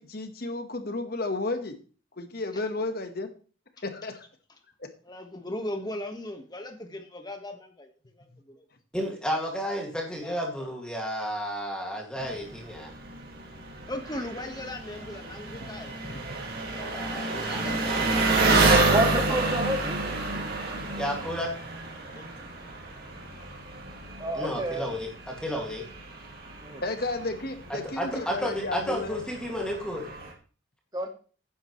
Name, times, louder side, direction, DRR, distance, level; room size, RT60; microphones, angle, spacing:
voice 1, 0.0-1.8 2.2-3.3 3.8-4.2 4.8-4.9 8.3-8.4 15.5-15.7 16.1-16.5 26.8-29.2, left 2 dB, 50° left, 7 dB, 1.5 m, -33 dB
voice 2, 5.0-7.9 8.2-8.7 10.2-10.7 13.9-15.9 16.7-17.8 22.1-22.3, left 1 dB, 20° left, 5 dB, 1.5 m, -38 dB
voice 3, 8.9-12.9 16.9-19.2 20.9-21.5 24.3-25.8 27.7-30.1, equal, 5° left, -1 dB, 2.4 m, -32 dB
Engine, 12.2-30.3, right 3 dB, 50° right, 2.3 m, -29 dB
voice 4, 18.9-20.0 24.2-24.9 26.6-26.8 30.9-31.1, right 1 dB, 20° right, 3 dB, 1.9 m, -28 dB
12.5 x 10.0 x 3.3 m, 0.39 s
head